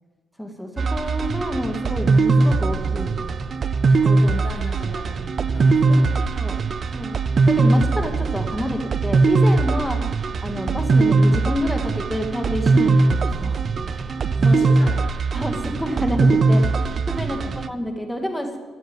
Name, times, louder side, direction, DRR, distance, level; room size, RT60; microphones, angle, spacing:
voice 1, 0.4-3.1 4.0-4.4 5.9-6.6 6.9-7.2 7.5-10.0 10.4-13.6 13.9-14.2 14.4-14.6 15.3-18.6, left 1 dB, 5° left, 4 dB, 2.0 m, -28 dB
sound 1, 0.8-17.7, right 3 dB, 45° right, 0.7 m, -20 dB
voice 2, 4.2-5.2 5.5-6.5 9.9-10.1 14.3-15.1 17.3-17.6, left 3 dB, 45° left, -3 dB, 3.3 m, -37 dB
15.0 x 8.0 x 9.0 m, 1.3 s
cardioid pair, 90°, 0 cm